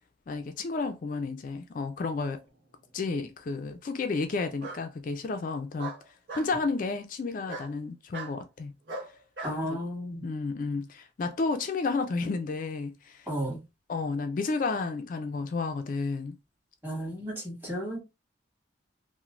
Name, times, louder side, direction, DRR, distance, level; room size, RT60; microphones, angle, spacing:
voice 1, 0.3-2.4 2.9-5.9 6.4-8.7 9.7-9.8 10.2-13.2 13.9-16.4, left 4 dB, 45° left, 0.4 m, -31 dB
Bark, 2.4-3.1 4.6-4.8 5.8-6.5 7.5-7.7 8.1-8.3 8.9-9.6, right 3 dB, 75° right, 1.2 m, -39 dB
voice 2, 9.4-10.2 13.3-13.6 16.8-18.0, equal, 10° right, 1.4 m, -33 dB
3.1 x 2.1 x 2.4 m
head